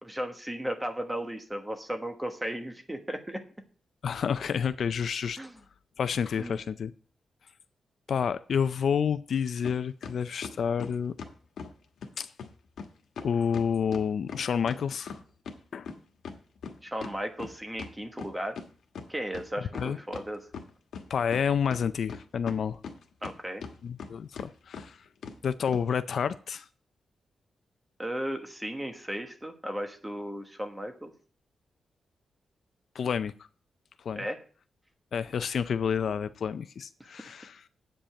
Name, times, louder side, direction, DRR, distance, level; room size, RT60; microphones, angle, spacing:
voice 1, 0.0-3.4 5.4-5.6 6.4-6.6 16.8-18.6 19.1-20.5 23.2-23.6 28.0-31.1 34.1-34.4, equal, 10° right, 1.2 m, -35 dB
voice 2, 4.0-5.4 6.0-6.9 8.1-11.1 12.2-12.3 13.2-15.2 15.7-15.9 19.8-20.0 21.1-22.8 23.8-25.0 25.4-26.7 33.0-33.3 34.1-34.2 35.1-37.6, left 7 dB, 60° left, 0.4 m, -29 dB
sound 1, 9.6-9.8 10.0-11.7 12.0-12.1 12.4-12.5 12.8-12.9 13.2-15.6 15.9-18.7 18.9-19.0 19.3-20.3 20.5-21.4 21.7-23.3 23.6-24.1 24.4-24.5 24.7-24.9 25.2-25.4 25.7-25.8, left 5 dB, 85° left, 1.3 m, -40 dB
8.6 x 5.3 x 7.6 m
wide cardioid pair, 160°, 0 cm